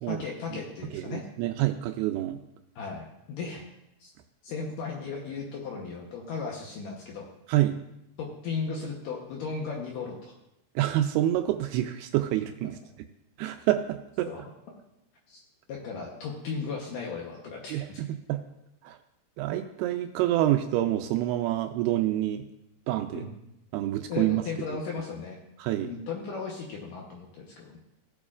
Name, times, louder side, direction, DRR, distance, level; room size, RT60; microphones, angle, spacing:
voice 1, 0.1-1.2 2.8-3.6 4.0-4.1 4.4-7.3 8.2-10.3 14.3-14.5 15.3-15.4 15.7-18.0 23.1-23.3 24.1-25.4 25.8-27.8, left 5 dB, 70° left, -1 dB, 2.2 m, -36 dB
voice 2, 0.9-2.4 7.5-7.8 10.8-12.7 13.4-14.3 17.7-18.4 18.8-19.0 19.4-22.4 22.9-23.3 23.7-24.4 25.6-25.9, right 14 dB, 85° right, 7 dB, 2.4 m, -27 dB
17.0 x 7.2 x 2.5 m, 0.85 s
omnidirectional pair, 4.8 m